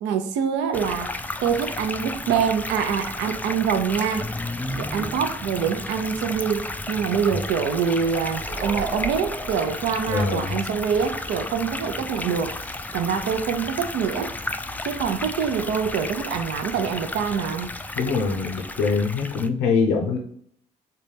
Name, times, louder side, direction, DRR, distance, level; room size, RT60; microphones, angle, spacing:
voice 1, 0.0-1.1 1.4-4.3 4.8-12.5 12.9-14.3 14.8-17.7, right 7 dB, 70° right, 7 dB, 0.5 m, -25 dB
sound 1, 0.7-19.5, left 2 dB, 10° left, 0.3 m, -33 dB
sound 2, 7.9-10.5, right 1 dB, 25° right, 1.1 m, -35 dB
voice 2, 10.1-10.6 18.0-20.2, left 4 dB, 80° left, 1 dB, 0.6 m, -23 dB
3.8 x 2.2 x 3.2 m, 0.63 s
hypercardioid pair, 45°, 19 cm